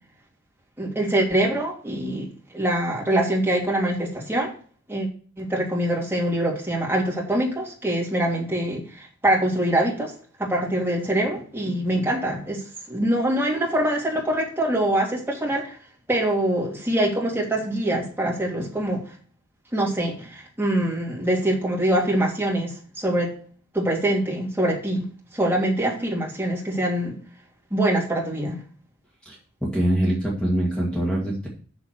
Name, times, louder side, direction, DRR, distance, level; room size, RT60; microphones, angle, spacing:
voice 1, 0.8-2.3 2.5-4.5 4.9-5.1 5.4-10.1 10.4-12.6 12.9-15.8 16.1-19.0 19.7-23.3 23.7-25.1 25.3-27.2 27.7-28.6, right 1 dB, 10° right, -3 dB, 2.8 m, -24 dB
voice 2, 29.2-31.5, right 1 dB, 5° left, -4 dB, 2.3 m, -24 dB
7.2 x 6.9 x 6.4 m, 0.43 s
head